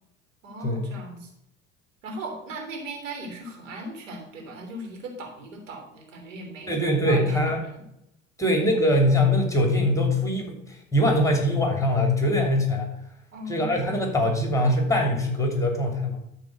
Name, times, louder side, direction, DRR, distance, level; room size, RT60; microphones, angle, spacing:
voice 1, 0.4-1.3 2.0-7.8 8.4-8.7 13.3-13.8, right 1 dB, 80° right, 3 dB, 3.4 m, -38 dB
voice 2, 6.7-7.6 8.4-12.9 13.5-16.2, left 1 dB, 10° left, 2 dB, 2.9 m, -22 dB
13.0 x 4.6 x 6.5 m, 0.79 s
hypercardioid pair, 75°, 38 cm